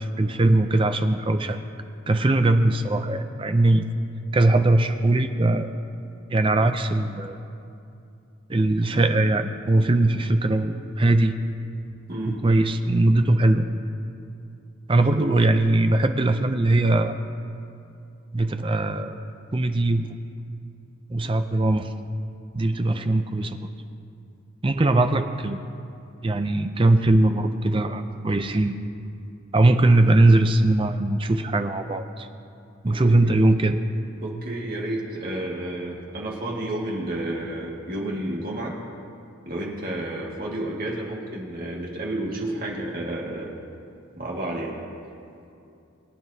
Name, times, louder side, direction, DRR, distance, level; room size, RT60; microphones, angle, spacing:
voice 1, 0.0-1.6 2.1-3.9 4.3-5.7 6.3-7.4 8.5-11.3 12.2-13.6 14.9-17.1 18.3-19.2 19.5-20.2 21.1-21.9 22.5-23.6 24.6-25.6 26.2-28.8 29.5-32.3 32.8-33.8, right 2 dB, 25° right, 8 dB, 0.5 m, -20 dB
voice 2, 12.1-12.4 15.0-15.3 32.9-33.3 34.2-38.8 39.5-43.6 44.2-44.8, right 1 dB, 45° right, -3 dB, 1.9 m, -31 dB
23.0 x 9.4 x 2.8 m, 2.6 s
head